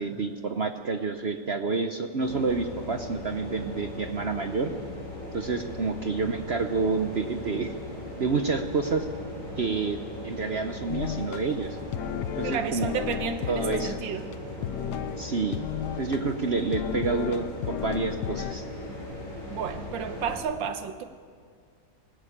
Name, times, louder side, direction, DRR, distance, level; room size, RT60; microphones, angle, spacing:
voice 1, 0.0-4.7 5.3-7.7 8.2-9.1 9.6-11.8 12.4-12.9 13.5-14.0 15.2-15.6 16.0-18.6, right 4 dB, 55° right, 7 dB, 0.7 m, -29 dB
sound 1, 2.2-20.4, left 1 dB, 50° left, 5.5 m, -39 dB
sound 2, 5.7-18.0, right 2 dB, 35° right, 1.6 m, -50 dB
sound 3, 10.9-11.4 11.9-14.0 14.3-14.4 14.6-15.2 15.5-16.2 16.7-18.5, left 10 dB, 70° left, 1.2 m, -33 dB
voice 2, 12.4-14.2 19.5-21.0, right 7 dB, 80° right, 9 dB, 1.8 m, -32 dB
19.0 x 16.5 x 8.6 m, 2.1 s
omnidirectional pair, 2.0 m